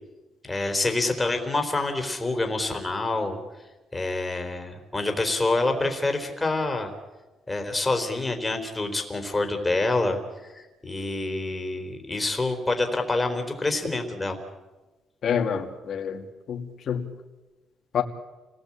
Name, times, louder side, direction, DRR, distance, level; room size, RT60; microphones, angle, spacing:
voice 1, 0.4-3.4 3.9-6.9 7.5-14.4, left 2 dB, 10° left, 3.7 m, -27 dB
voice 2, 15.2-17.1 17.9-18.0, left 7 dB, 50° left, 2.6 m, -28 dB
30.0 x 19.0 x 8.6 m
cardioid pair, 155°, 0 cm